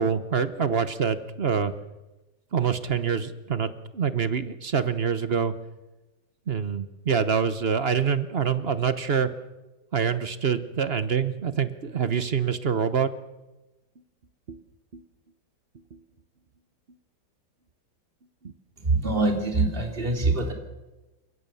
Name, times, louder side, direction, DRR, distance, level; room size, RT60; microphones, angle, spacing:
voice 1, 0.0-1.7 2.5-5.5 6.5-9.3 9.9-13.1 14.5-14.6 14.9-15.0 15.9-16.0 18.4-18.5, right 6 dB, 40° right, 11 dB, 0.9 m, -26 dB
voice 2, 18.8-20.5, right 3 dB, 25° right, 2 dB, 3.3 m, -24 dB
29.5 x 16.5 x 7.0 m, 1.1 s
omnidirectional pair, 2.2 m